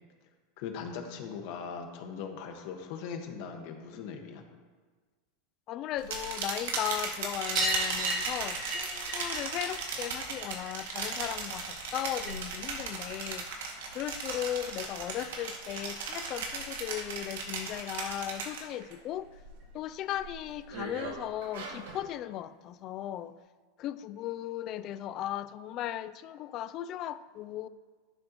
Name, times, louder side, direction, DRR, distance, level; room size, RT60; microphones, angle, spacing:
voice 1, 0.6-4.4, left 6 dB, 55° left, 1.5 m, -40 dB
voice 2, 5.7-13.5 13.9-19.3 19.7-23.4 23.8-27.7, left 12 dB, 35° left, 0.4 m, -37 dB
sound 1, 6.0-18.9 19.3-19.7 20.1-22.0, right 4 dB, 85° right, 2.2 m, -37 dB
sound 2, 7.5-12.6 12.9-14.0 15.4-15.5 15.7-15.8 16.1-16.2 17.5-17.6 17.8-17.9 18.3-18.4 19.6-19.7 20.5-20.6, right 1 dB, 30° right, 2.3 m, -37 dB
12.0 x 10.5 x 3.0 m
supercardioid pair, 155°, 0 cm